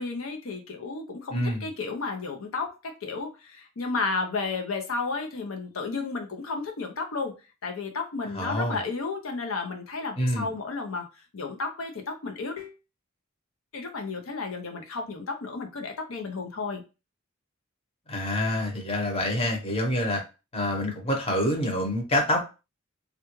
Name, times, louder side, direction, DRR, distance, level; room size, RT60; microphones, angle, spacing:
voice 1, 0.0-7.3 7.6-11.1 11.3-12.7 13.7-16.8, left 4 dB, 80° left, 3 dB, 0.7 m, -32 dB
voice 2, 1.3-1.6 8.3-8.8 10.2-10.5 18.1-20.2 20.5-22.4, left 1 dB, 30° left, 1 dB, 0.9 m, -26 dB
3.4 x 2.4 x 3.0 m, 0.29 s
head